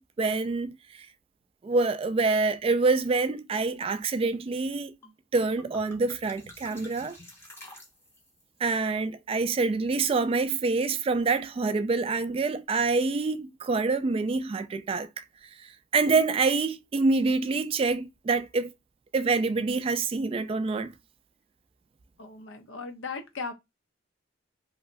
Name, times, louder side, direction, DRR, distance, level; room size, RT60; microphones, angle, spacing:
voice 1, 0.2-1.1 1.6-4.9 5.3-7.2 8.6-15.2 15.6-18.7 19.1-20.9, right 3 dB, 30° right, 0.3 m, -26 dB
sound 1, 5.0-5.1 5.4-8.4, left 1 dB, 15° left, 0.6 m, -49 dB
voice 2, 22.2-23.5, left 4 dB, 90° left, 0.7 m, -37 dB
3.0 x 2.8 x 2.5 m
head